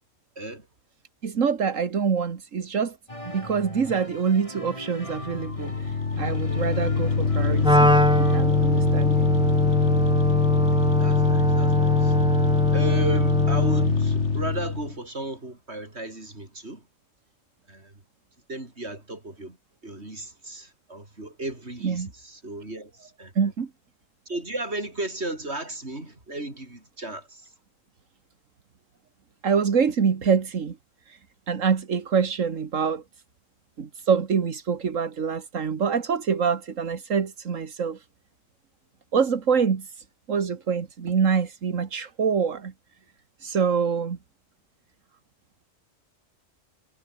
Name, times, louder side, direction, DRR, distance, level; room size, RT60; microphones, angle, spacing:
voice 1, 0.4-0.7 10.7-12.1 12.7-16.8 17.7-17.9 18.5-19.6 19.8-23.5 24.3-27.4, right 2 dB, 55° right, 5.9 m, -35 dB
voice 2, 1.2-3.0 3.3-9.3 21.8-22.1 23.4-23.7 29.4-30.8 31.1-31.2 31.5-33.0 33.8-38.0 39.1-42.7 43.4-44.2, right 6 dB, 80° right, 2.0 m, -25 dB
sound 1, 3.1-8.4, left 1 dB, 25° left, 5.4 m, -40 dB
sound 2, 5.1-15.0, left 4 dB, 65° left, 2.3 m, -23 dB
Wind instrument woodwind instrument, 7.6-14.0, equal, 5° right, 1.5 m, -23 dB
omnidirectional pair, 1.3 m